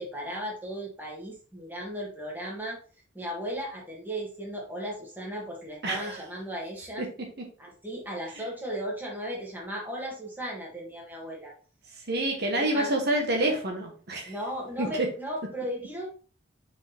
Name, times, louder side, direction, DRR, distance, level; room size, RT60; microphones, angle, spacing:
voice 1, 0.0-2.8 3.1-7.1 7.6-11.5 12.5-12.9 14.3-16.1, equal, 10° right, -2 dB, 2.0 m, -36 dB
voice 2, 5.8-6.2 7.0-7.1 8.4-8.5 12.1-14.3 14.8-15.1, right 1 dB, 50° right, 2 dB, 1.3 m, -27 dB
5.9 x 5.6 x 3.5 m, 0.39 s
head